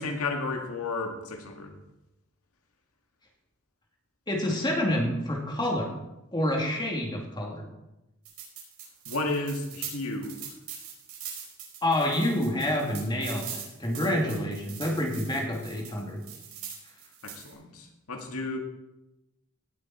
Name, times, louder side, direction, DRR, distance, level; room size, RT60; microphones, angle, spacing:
voice 1, 0.0-1.8 9.1-10.5 17.2-18.6, left 3 dB, 90° left, 3 dB, 2.0 m, -33 dB
voice 2, 4.3-5.9 6.3-7.6 11.8-16.2, left 1 dB, 20° left, 0 dB, 2.7 m, -28 dB
sound 1, 8.2-17.5, right 8 dB, 75° right, 4.9 m, -42 dB
18.0 x 7.6 x 4.4 m, 0.94 s
head